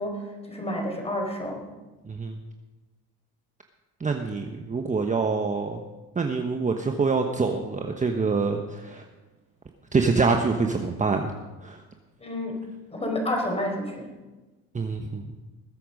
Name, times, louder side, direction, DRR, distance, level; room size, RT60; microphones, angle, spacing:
voice 1, 0.0-1.7 12.2-12.6 12.9-14.1, left 1 dB, 15° left, 1 dB, 4.8 m, -30 dB
voice 2, 2.0-2.4 4.0-5.8 6.1-9.1 9.9-11.3 11.6-11.8 14.7-15.3, right 4 dB, 20° right, 4 dB, 1.1 m, -25 dB
20.5 x 8.4 x 5.3 m, 1.2 s
supercardioid pair, 95°, 35 cm